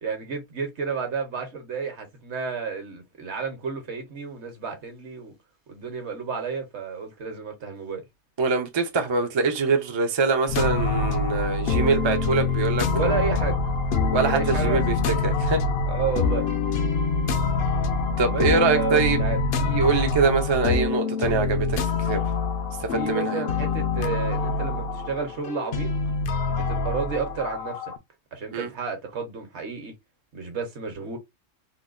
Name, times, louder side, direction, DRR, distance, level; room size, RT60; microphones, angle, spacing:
voice 1, 0.0-5.3 5.7-8.0 12.9-13.6 14.2-14.8 15.9-16.4 18.3-19.4 22.9-25.9 26.5-27.9 28.3-29.9 30.3-31.2, right 6 dB, 65° right, 1.2 m, -31 dB
voice 2, 8.4-13.2 14.1-15.6 18.2-19.2 19.6-22.2 22.8-23.4 28.5-28.7, right 4 dB, 40° right, 0.3 m, -24 dB
sound 1, 10.5-28.0, left 4 dB, 65° left, 0.7 m, -25 dB
3.9 x 2.2 x 2.4 m
omnidirectional pair, 1.3 m